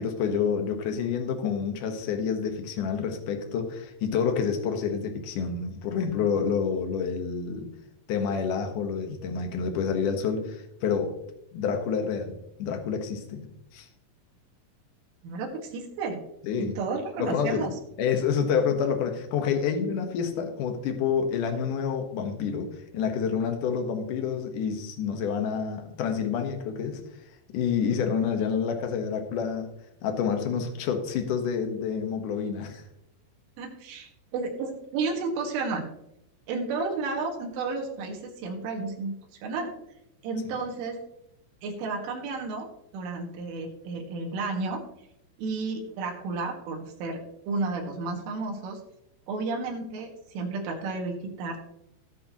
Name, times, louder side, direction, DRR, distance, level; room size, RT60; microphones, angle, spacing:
voice 1, 0.0-7.7 8.1-11.1 11.5-13.9 16.4-16.8 17.2-17.7 18.0-27.0 27.5-29.7 30.0-32.8, left 6 dB, 65° left, 5 dB, 2.1 m, -28 dB
voice 2, 15.2-16.2 16.6-17.8 33.6-35.8 36.5-39.2 39.4-39.7 40.2-41.0 41.6-42.7 42.9-44.8 45.4-48.8 49.3-51.6, right 3 dB, 85° right, 0 dB, 4.4 m, -32 dB
17.0 x 8.8 x 3.0 m, 0.81 s
omnidirectional pair, 5.5 m